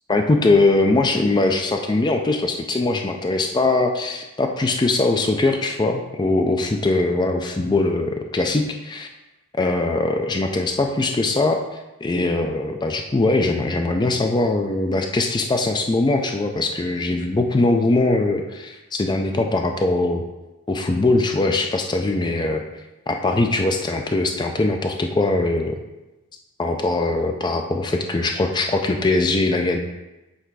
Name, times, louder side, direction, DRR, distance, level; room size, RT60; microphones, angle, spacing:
voice 1, 0.1-9.1 9.6-11.6 12.0-20.2 20.7-22.6 23.1-25.8 26.6-29.8, left 2 dB, 20° left, 4 dB, 0.4 m, -21 dB
7.9 x 3.4 x 4.7 m, 1.0 s
head